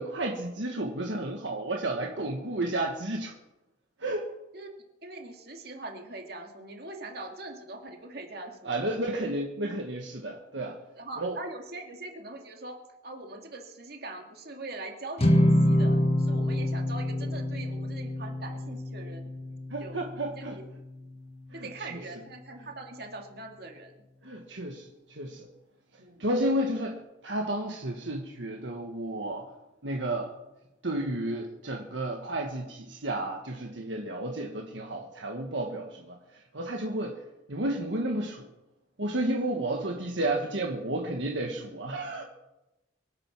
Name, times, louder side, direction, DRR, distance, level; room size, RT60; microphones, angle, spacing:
voice 1, 0.0-3.3 4.0-4.3 8.6-10.8 11.2-11.4 19.7-20.6 21.5-22.0 22.6-22.7 24.2-25.5 26.2-29.5 29.8-30.3 30.8-36.2 36.5-37.2 37.5-38.5 39.0-42.3, right 1 dB, 75° right, 2 dB, 1.5 m, -32 dB
voice 2, 5.0-8.8 11.0-12.8 13.0-19.3 19.8-20.0 20.4-20.6 21.0-21.1 21.5-23.9 26.0-26.3, right 2 dB, 55° right, 3 dB, 2.4 m, -42 dB
sound 1, 15.2-21.6, left 1 dB, 30° left, 1.5 m, -27 dB
24.0 x 8.9 x 6.0 m, 0.99 s
head